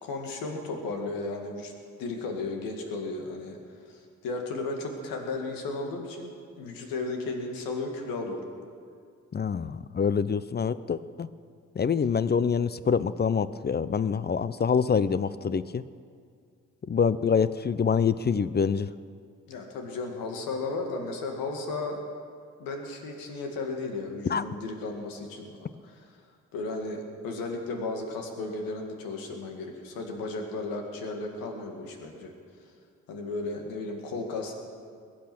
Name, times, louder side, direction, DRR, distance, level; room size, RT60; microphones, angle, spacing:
voice 1, 0.0-1.7 2.0-3.6 3.9-8.4 19.5-22.0 22.6-26.1 26.5-32.3 33.1-34.5, left 3 dB, 70° left, 3 dB, 2.3 m, -34 dB
voice 2, 9.3-11.3 11.8-15.8 16.9-18.9 24.3-24.4, left 6 dB, 30° left, 16 dB, 0.6 m, -26 dB
21.5 x 8.7 x 6.2 m, 2.2 s
hypercardioid pair, 45°, 35 cm